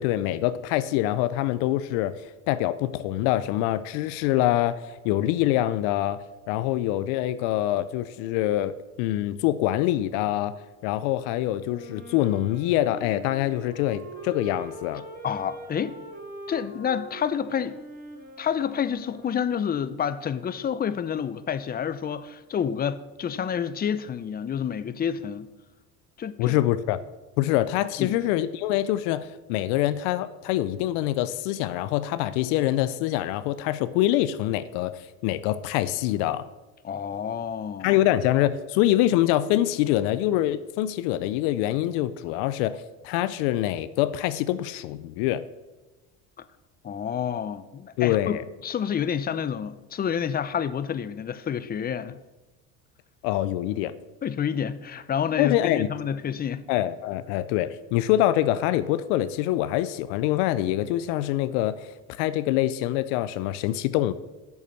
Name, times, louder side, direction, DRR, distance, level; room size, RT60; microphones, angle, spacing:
voice 1, 0.0-2.1 2.5-6.2 6.5-10.5 10.8-15.0 26.4-27.0 27.4-36.5 37.8-45.4 48.0-48.4 53.2-53.9 55.4-55.9 56.7-64.1, left 14 dB, 85° left, 0.5 m, -25 dB
Wind instrument woodwind instrument, 11.6-20.0, right 1 dB, 30° right, 3.0 m, -43 dB
voice 2, 15.2-16.0 16.5-17.8 18.4-25.5 26.2-26.6 28.0-28.2 36.8-38.0 46.8-52.2 54.2-56.7, left 8 dB, 30° left, 0.6 m, -29 dB
8.2 x 6.9 x 6.3 m
supercardioid pair, 100°, 32 cm